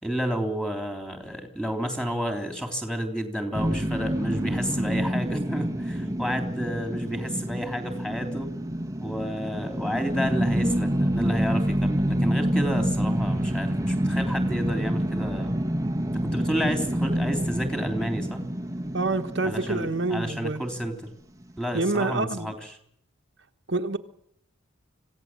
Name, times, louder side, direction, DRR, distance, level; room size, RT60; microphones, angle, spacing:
voice 1, 0.0-8.5 9.0-15.6 16.1-18.4 19.4-20.9 21.6-22.8, equal, 5° left, 5 dB, 3.5 m, -31 dB
sound 1, 3.5-20.7, equal, 15° right, 1.2 m, -27 dB
voice 2, 18.9-20.6 21.7-22.5 23.7-24.0, right 2 dB, 55° right, 4 dB, 1.3 m, -27 dB
26.5 x 16.5 x 7.6 m, 0.70 s
head